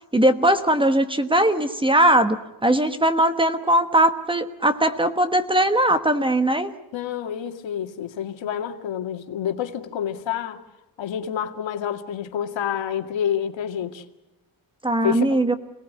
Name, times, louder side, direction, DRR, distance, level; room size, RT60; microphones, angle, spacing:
voice 1, 0.1-2.4 2.6-6.7 14.8-15.5, right 1 dB, 10° right, 9 dB, 1.2 m, -20 dB
voice 2, 6.9-10.6 11.0-14.0 15.0-15.4, left 9 dB, 80° left, 6 dB, 2.3 m, -28 dB
28.0 x 18.5 x 9.5 m, 0.98 s
wide cardioid pair, 170°, 45 cm